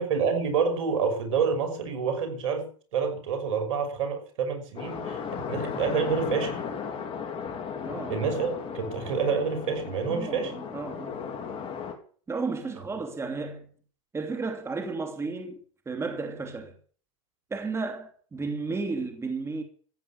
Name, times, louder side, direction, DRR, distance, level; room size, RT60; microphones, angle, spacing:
voice 1, 0.0-5.2 5.5-6.6 8.1-10.5, right 5 dB, 75° right, 5.9 m, -28 dB
sound 1, 4.8-11.9, left 6 dB, 35° left, 4.0 m, -35 dB
voice 2, 7.8-8.2 10.1-11.2 12.3-13.7 14.1-15.6 15.9-16.8 17.5-19.6, right 4 dB, 15° right, 2.8 m, -33 dB
15.0 x 9.3 x 8.4 m
hypercardioid pair, 105°, 17 cm